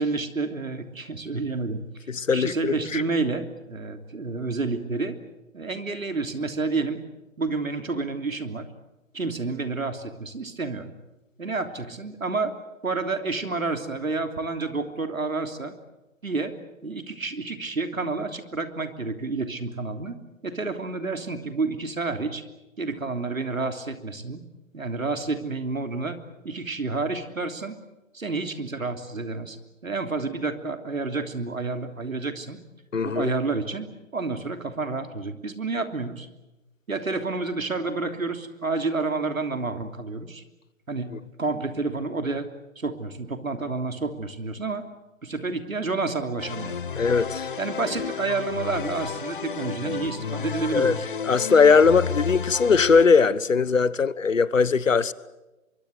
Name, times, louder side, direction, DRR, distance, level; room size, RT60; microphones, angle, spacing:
voice 1, 0.0-1.8 2.3-5.2 5.5-7.0 7.4-8.7 9.1-10.9 11.4-12.5 12.8-15.7 16.2-16.5 16.8-20.2 20.4-22.4 22.8-24.4 24.7-26.2 26.4-27.7 28.1-29.6 29.8-32.6 33.0-33.9 34.1-36.3 36.9-40.4 40.9-41.1 41.4-42.5 42.8-44.8 45.2-46.8 47.6-51.0, right 3 dB, 80° right, 3.2 m, -29 dB
voice 2, 2.1-3.0 32.9-33.3 47.0-47.5 50.7-50.9 51.3-55.1, left 5 dB, 70° left, 1.3 m, -20 dB
sound 1, 46.4-53.1, left 6 dB, 40° left, 0.9 m, -32 dB
24.0 x 24.0 x 8.1 m
figure-of-eight pair, 150°, 41 cm